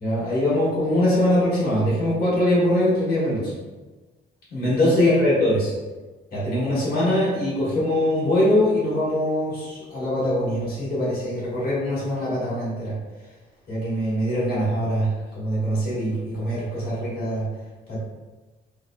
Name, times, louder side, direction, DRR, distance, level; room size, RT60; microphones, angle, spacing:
voice 1, 0.0-3.5 4.5-5.7 6.3-12.9 13.7-15.1 15.3-17.4 17.9-18.0, left 1 dB, 50° left, -9 dB, 1.4 m, -22 dB
2.8 x 2.1 x 2.2 m, 1.2 s
cardioid pair, 90°, 20 cm